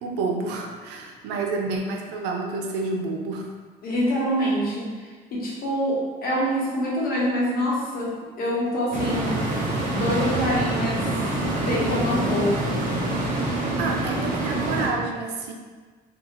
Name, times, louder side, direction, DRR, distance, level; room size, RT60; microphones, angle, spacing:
voice 1, 0.0-3.5 13.7-15.5, right 3 dB, 90° right, 1 dB, 0.5 m, -29 dB
voice 2, 3.8-9.4 9.9-11.1 11.6-12.7, equal, 60° left, -5 dB, 1.1 m, -25 dB
sound 1, 8.9-14.9, right 1 dB, 50° right, 0.8 m, -26 dB
2.8 x 2.4 x 3.8 m, 1.4 s
cardioid pair, 110°, 17 cm